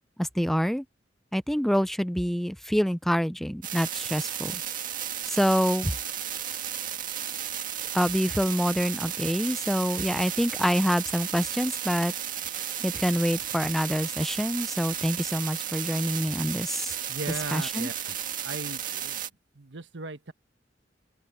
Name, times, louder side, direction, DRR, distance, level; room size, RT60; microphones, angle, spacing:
voice 1, 0.2-0.8 1.3-4.6 5.3-5.9 7.9-12.1 12.8-16.9 17.5-17.9, equal, ahead, 0.6 m, -26 dB
sound 1, 3.6-19.3, right 10 dB, 50° right, 1.9 m, -34 dB
voice 2, 17.1-18.1 18.4-19.2 19.6-20.3, right 3 dB, 70° right, 1.3 m, -37 dB
open air
head